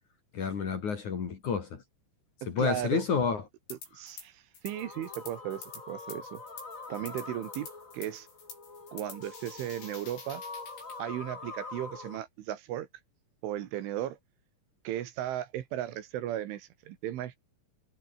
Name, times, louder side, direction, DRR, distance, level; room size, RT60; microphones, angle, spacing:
voice 1, 0.3-1.8 2.5-3.4, left 6 dB, 45° left, 3.3 m, -29 dB
voice 2, 2.4-3.1 3.7-6.4 6.9-7.7 7.9-8.3 8.9-10.4 11.0-12.9 13.4-14.2 14.9-17.4, right 12 dB, 70° right, 4.0 m, -36 dB
sound 1, 3.7-4.3 4.5-11.0, left 5 dB, 65° left, 10.5 m, -48 dB
sound 2, 4.6-12.2, left 3 dB, 20° left, 2.4 m, -45 dB
omnidirectional pair, 5.9 m